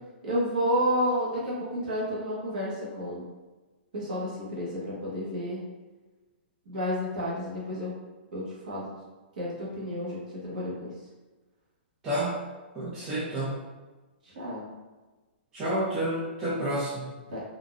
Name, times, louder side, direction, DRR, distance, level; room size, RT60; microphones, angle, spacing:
voice 1, 0.2-3.2 3.9-5.6 6.7-7.9 8.3-8.9 9.4-10.2 10.4-10.9 14.2-14.7 17.3-17.4, equal, 45° right, -6 dB, 1.2 m, -30 dB
voice 2, 12.0-12.4 12.7-13.6 15.5-17.1, right 1 dB, 10° right, -9 dB, 0.4 m, -30 dB
3.7 x 2.4 x 2.4 m, 1.2 s
hypercardioid pair, 180°, 6 cm